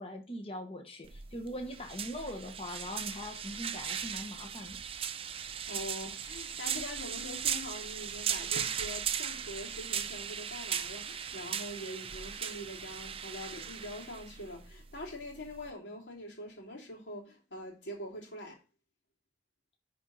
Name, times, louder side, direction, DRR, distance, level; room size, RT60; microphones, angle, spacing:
voice 1, 0.0-4.8, left 1 dB, 35° left, 1.2 m, -41 dB
sound 1, 1.0-15.7, right 8 dB, 30° right, 0.5 m, -38 dB
voice 2, 5.3-18.6, left 1 dB, 85° left, 2.9 m, -44 dB
10.0 x 4.4 x 4.0 m
head